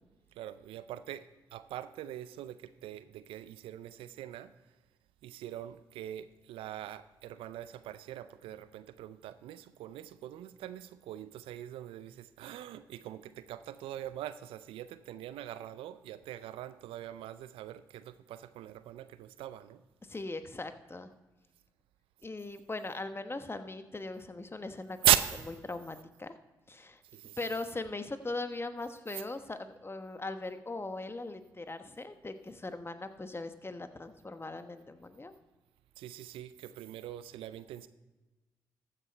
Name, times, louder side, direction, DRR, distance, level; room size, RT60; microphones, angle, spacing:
voice 1, 0.4-4.5 5.2-19.8 25.0-25.3 27.1-27.4 29.1-29.2 36.0-37.9, right 13 dB, 75° right, 0.4 m, -38 dB
voice 2, 20.1-21.1 22.2-25.0 25.6-26.3 26.7-27.0 27.4-35.3, left 2 dB, 25° left, 1.1 m, -40 dB
14.0 x 6.7 x 4.5 m
hypercardioid pair, 40°, 9 cm